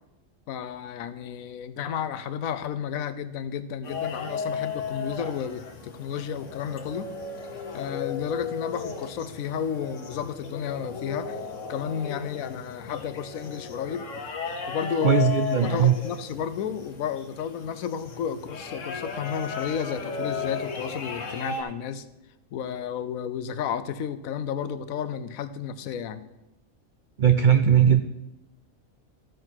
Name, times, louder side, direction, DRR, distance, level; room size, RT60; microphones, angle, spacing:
voice 1, 0.5-7.1 7.7-11.4 11.7-14.1 14.7-22.1 22.5-26.2, left 8 dB, 85° left, 12 dB, 1.1 m, -32 dB
sound 1, 3.8-21.6, left 5 dB, 65° left, 1.4 m, -35 dB
voice 2, 15.0-15.9 27.2-28.0, right 8 dB, 85° right, 9 dB, 0.4 m, -19 dB
14.0 x 6.4 x 4.4 m, 0.95 s
omnidirectional pair, 1.4 m